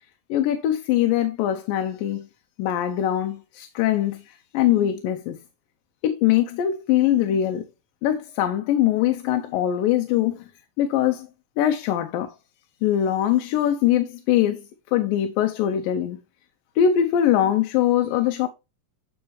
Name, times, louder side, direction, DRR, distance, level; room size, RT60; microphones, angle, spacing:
voice 1, 0.3-2.3 2.6-5.4 6.0-7.6 8.0-10.4 10.8-11.3 11.6-12.3 12.8-14.6 14.9-16.2 16.8-18.5, left 11 dB, 85° left, 2.4 m, -22 dB
8.7 x 4.4 x 3.1 m
omnidirectional pair, 3.9 m